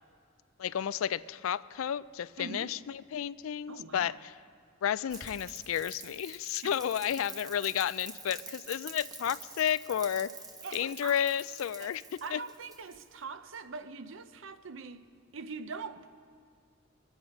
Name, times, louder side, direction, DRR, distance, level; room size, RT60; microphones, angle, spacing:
voice 1, 0.6-4.3 4.8-10.3 10.7-12.4, left 9 dB, 75° left, 0.3 m, -32 dB
voice 2, 2.4-2.7 3.7-4.1 6.6-6.8 10.6-11.2 11.8-11.9 12.2-16.1, right 4 dB, 65° right, 0.7 m, -43 dB
Rain, 5.1-13.2, right 3 dB, 20° right, 1.0 m, -47 dB
23.0 x 9.0 x 5.2 m
head